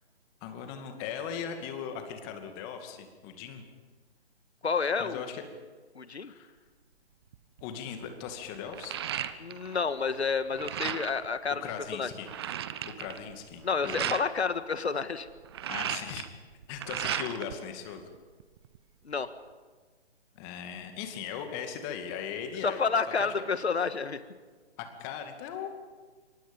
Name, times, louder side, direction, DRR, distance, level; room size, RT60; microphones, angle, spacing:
voice 1, 0.4-3.6 5.0-5.4 6.2-6.5 7.6-9.0 11.6-12.3 12.8-14.2 15.7-16.3 16.7-18.1 20.3-22.9 23.2-23.3 24.8-25.7, left 8 dB, 20° left, 6 dB, 2.3 m, -39 dB
voice 2, 4.6-5.2 6.0-6.3 9.4-11.6 12.0-12.1 13.6-15.3 19.1-19.3 22.6-24.2, left 5 dB, 70° left, 11 dB, 1.8 m, -29 dB
sound 1, 7.3-7.6 8.0-9.8 10.1-11.3 11.7-11.8 12.0-14.3 15.3-17.5 17.9-18.8, right 10 dB, 25° right, 0.8 m, -35 dB
27.0 x 24.5 x 5.4 m, 1.4 s
figure-of-eight pair, 145°, 33 cm